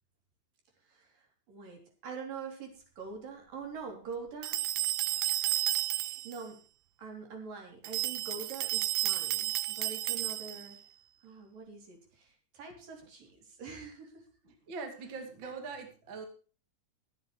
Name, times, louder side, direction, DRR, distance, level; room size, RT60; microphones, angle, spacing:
voice 1, 0.8-4.6 5.1-5.5 5.9-6.6 7.0-10.9 11.2-14.3 15.4-15.5, right 5 dB, 65° right, 2 dB, 4.8 m, -45 dB
sound 1, 4.4-6.4 7.8-10.7, right 16 dB, 80° right, 1.8 m, -32 dB
voice 2, 14.4-16.3, right 4 dB, 35° right, 4 dB, 2.5 m, -42 dB
23.5 x 8.2 x 3.2 m, 0.38 s
omnidirectional pair, 4.3 m